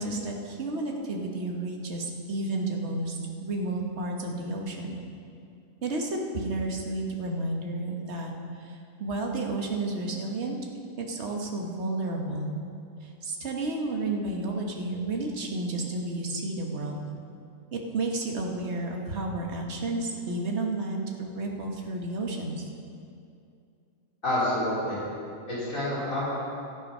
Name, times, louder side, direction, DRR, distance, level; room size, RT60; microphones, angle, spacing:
voice 1, 0.0-5.0 5.8-10.6 11.0-12.6 13.0-17.0 17.7-22.7, right 2 dB, 50° right, 0 dB, 1.6 m, -31 dB
voice 2, 24.2-25.0 25.5-26.3, left 1 dB, 65° left, -9 dB, 4.5 m, -28 dB
13.0 x 10.5 x 5.5 m, 2.5 s
omnidirectional pair, 1.5 m